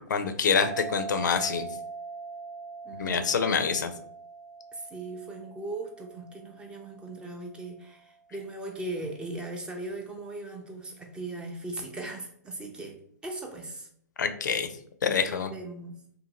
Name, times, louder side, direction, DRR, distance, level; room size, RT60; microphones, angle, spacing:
voice 1, 0.1-1.6 2.9-3.9 14.2-14.7 15.0-15.5, left 6 dB, 80° left, 8 dB, 0.4 m, -26 dB
sound 1, 0.6-7.7, right 4 dB, 60° right, 0.7 m, -42 dB
voice 2, 2.8-3.3 4.7-13.0 13.2-13.9 15.3-16.0, right 2 dB, 10° right, 3 dB, 0.4 m, -38 dB
2.6 x 2.5 x 2.8 m, 0.65 s
hypercardioid pair, 130°, 10 cm